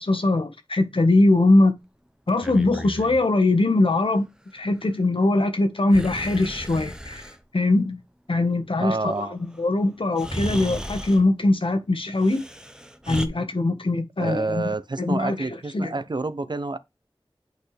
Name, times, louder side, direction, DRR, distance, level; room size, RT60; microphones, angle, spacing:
voice 1, 0.0-1.7 2.3-4.2 4.5-8.0 8.3-12.4 13.1-14.7 15.0-15.9, left 2 dB, 75° left, 1.4 m, -21 dB
Breathing, 2.3-3.2 5.9-7.4 9.5-9.6 10.2-11.3 12.2-13.3, equal, 10° right, 0.9 m, -34 dB
voice 2, 8.8-9.3 14.2-16.8, right 3 dB, 55° right, 0.6 m, -28 dB
8.2 x 4.4 x 3.3 m
wide cardioid pair, 45°, 9 cm